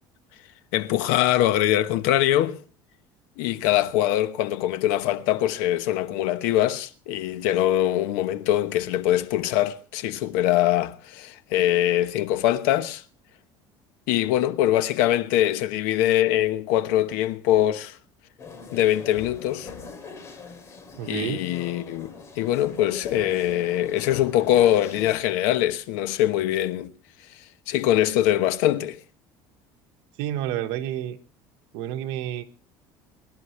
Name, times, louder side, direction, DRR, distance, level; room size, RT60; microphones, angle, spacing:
voice 1, 0.7-2.6 3.4-13.0 14.1-18.0 18.7-19.7 21.0-26.9 27.3-29.0, left 13 dB, 90° left, 1.1 m, -23 dB
sound 1, 18.4-25.2, left 5 dB, 30° left, 2.9 m, -42 dB
voice 2, 21.0-21.4 30.2-31.2 31.7-32.4, right 12 dB, 75° right, 1.4 m, -29 dB
23.0 x 11.5 x 3.3 m
cardioid pair, 160°, 9 cm